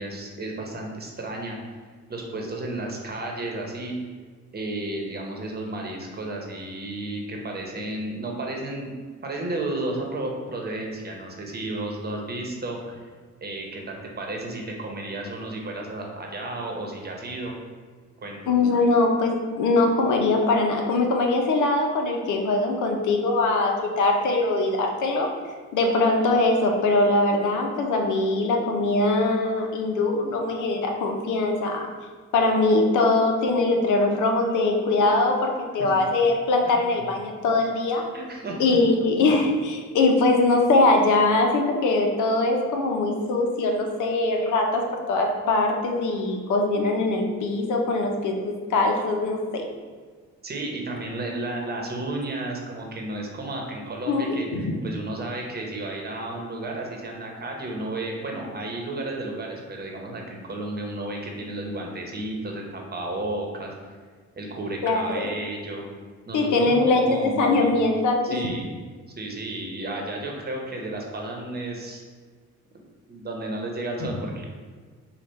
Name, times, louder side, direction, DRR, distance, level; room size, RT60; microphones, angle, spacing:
voice 1, 0.0-1.8 2.1-3.9 4.5-8.9 9.2-13.0 13.4-17.6 18.2-18.4 35.8-35.9 36.6-36.8 38.1-38.6 50.4-63.7 64.4-65.8 66.3-67.8 68.3-68.7 69.2-72.0 72.7-72.8 73.1-74.4, right 2 dB, 30° right, 0 dB, 1.0 m, -32 dB
voice 2, 18.5-25.3 25.7-31.9 32.3-38.0 38.6-44.8 45.1-49.6 54.1-54.7 64.8-65.3 66.3-68.4, left 2 dB, 80° left, 2 dB, 0.7 m, -22 dB
5.0 x 2.4 x 4.3 m, 1.5 s
cardioid pair, 90°, 30 cm